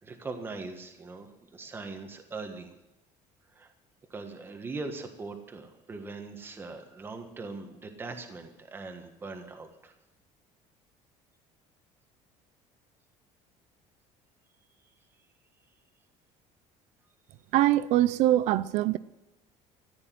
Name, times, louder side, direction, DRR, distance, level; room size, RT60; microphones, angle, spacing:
voice 1, 0.0-2.7 3.5-3.7 4.1-9.9, right 3 dB, 15° right, 1.5 m, -41 dB
voice 2, 17.5-19.0, right 14 dB, 55° right, 0.6 m, -23 dB
14.5 x 10.5 x 7.7 m
cardioid pair, 175°, 13 cm